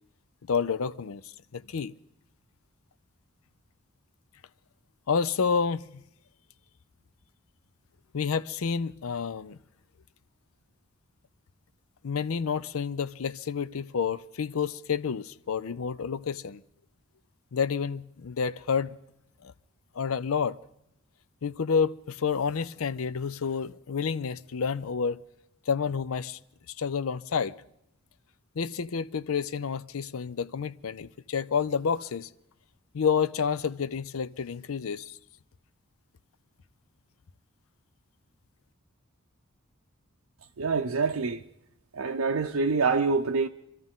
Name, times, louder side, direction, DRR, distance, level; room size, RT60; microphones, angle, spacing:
voice 1, 0.5-1.2 1.5-1.9 5.1-6.0 8.1-9.6 12.0-16.6 17.5-19.0 19.4-19.5 20.0-20.6 21.4-25.2 25.7-26.4 26.8-27.6 28.6-32.3 32.9-35.2, left 6 dB, 80° left, 0.5 m, -29 dB
voice 2, 40.6-41.4 41.9-43.5, right 4 dB, 85° right, 0.6 m, -26 dB
26.0 x 13.5 x 3.7 m
head